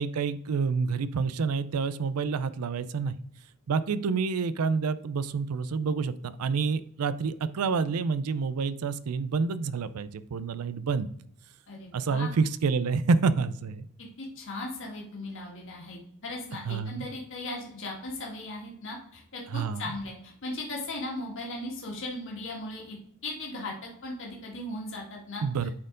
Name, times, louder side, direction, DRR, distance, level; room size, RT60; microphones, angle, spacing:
voice 1, 0.0-3.1 3.7-11.1 11.9-13.9 16.7-17.1 19.5-19.8 25.4-25.7, right 5 dB, 75° right, 15 dB, 0.5 m, -28 dB
voice 2, 11.7-12.3 14.2-23.0 23.2-23.7 24.0-25.4, left 2 dB, 60° left, -2 dB, 1.7 m, -37 dB
8.4 x 4.4 x 3.8 m, 0.69 s
head